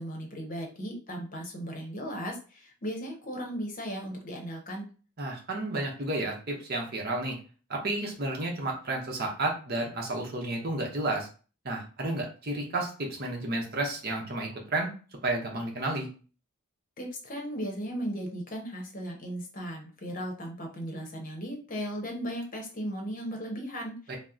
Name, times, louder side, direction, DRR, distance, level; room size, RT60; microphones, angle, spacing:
voice 1, 0.0-4.9 17.0-24.2, equal, 40° left, 1 dB, 0.8 m, -36 dB
voice 2, 5.2-7.4 7.7-11.3 11.6-14.9 15.2-16.1 24.1-24.2, right 2 dB, 45° right, 0 dB, 0.9 m, -31 dB
2.9 x 2.1 x 3.6 m, 0.37 s
head